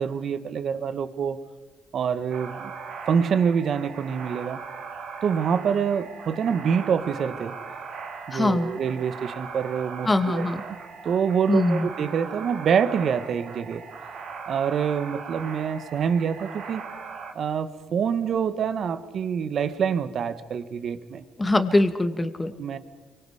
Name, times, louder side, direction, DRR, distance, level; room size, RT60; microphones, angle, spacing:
voice 1, 0.0-1.4 1.9-2.7 3.0-4.6 5.2-7.6 8.3-10.8 11.0-13.8 14.5-16.8 17.3-21.2 22.6-22.8, right 7 dB, 60° right, 12 dB, 1.4 m, -26 dB
sound 1, 2.3-17.3, right 5 dB, 80° right, 3.4 m, -39 dB
voice 2, 8.3-8.7 10.1-10.6 11.5-11.9 21.4-22.5, left 2 dB, 20° left, 8 dB, 2.0 m, -22 dB
29.5 x 24.5 x 5.0 m, 1.2 s
cardioid pair, 90°, 0 cm